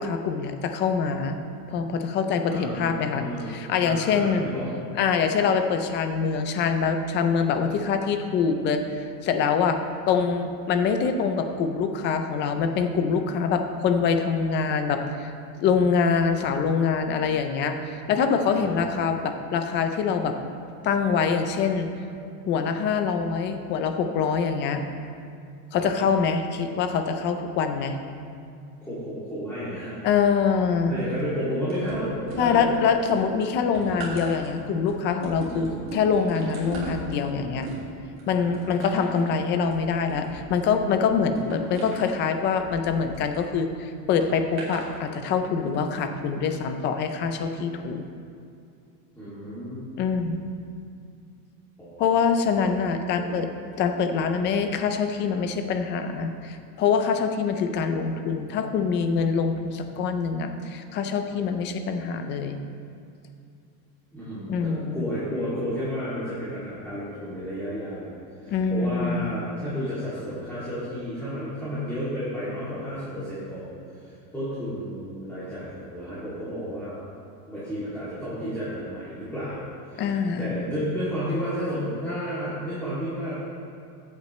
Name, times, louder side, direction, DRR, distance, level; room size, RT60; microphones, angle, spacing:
voice 1, 0.0-1.4 1.7-4.5 4.9-9.8 10.1-15.3 15.6-20.3 20.8-21.9 22.5-24.8 25.7-28.0 30.0-30.9 32.4-37.7 38.3-48.0 50.0-50.5 52.0-53.5 53.8-62.6 64.5-65.1 68.5-69.4 80.0-80.6, left 6 dB, 25° left, 7 dB, 0.4 m, -24 dB
voice 2, 2.4-4.7 18.5-18.8 25.7-26.0 28.8-30.0 30.9-32.7 35.5-35.9 38.3-38.8 49.2-50.1 51.8-52.3 53.1-53.4 64.1-68.2 68.4-73.8 74.0-77.0 77.5-83.4, equal, 5° left, -12 dB, 2.4 m, -32 dB
sound 1, 31.7-32.7 33.1-43.5 44.2-44.9 45.6-45.8, right 2 dB, 25° right, 2.6 m, -39 dB
14.5 x 8.4 x 3.1 m, 2.5 s
supercardioid pair, 155°, 49 cm